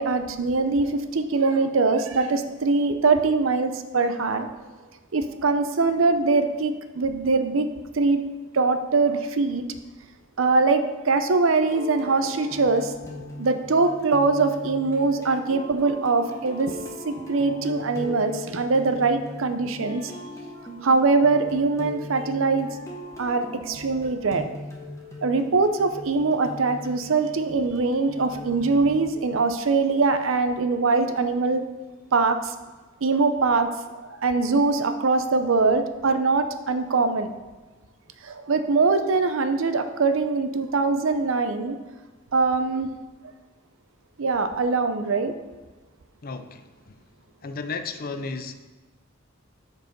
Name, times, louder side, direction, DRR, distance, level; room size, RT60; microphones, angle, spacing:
voice 1, 0.0-4.5 5.1-7.7 7.9-8.2 8.5-9.6 10.4-12.9 13.4-16.7 17.0-20.1 20.8-22.7 23.2-24.5 25.2-31.6 32.1-32.5 33.0-33.7 33.9-37.3 38.2-41.8 42.3-42.9 44.2-45.3, right 3 dB, 65° right, 9 dB, 0.6 m, -22 dB
sound 1, 11.6-29.1, left 2 dB, 15° left, 1.2 m, -39 dB
voice 2, 46.2-47.0 47.4-48.5, left 4 dB, 45° left, 9 dB, 0.5 m, -34 dB
7.8 x 4.6 x 5.3 m, 1.3 s
head